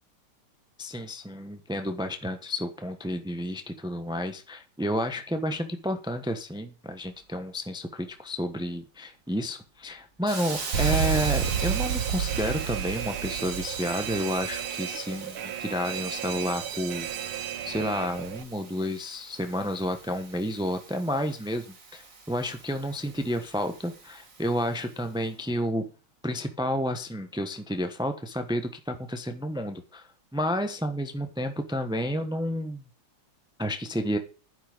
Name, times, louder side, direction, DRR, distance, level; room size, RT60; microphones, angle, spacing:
voice 1, 0.8-17.1 17.6-21.7 21.9-25.9 26.2-32.8 33.6-34.2, equal, 5° right, 7 dB, 0.5 m, -31 dB
Hiss, 10.3-25.0, right 4 dB, 40° right, 2.3 m, -42 dB
Alarm, 10.7-18.4, right 9 dB, 75° right, 2.1 m, -31 dB
11.5 x 10.5 x 5.2 m, 0.35 s
omnidirectional pair, 2.4 m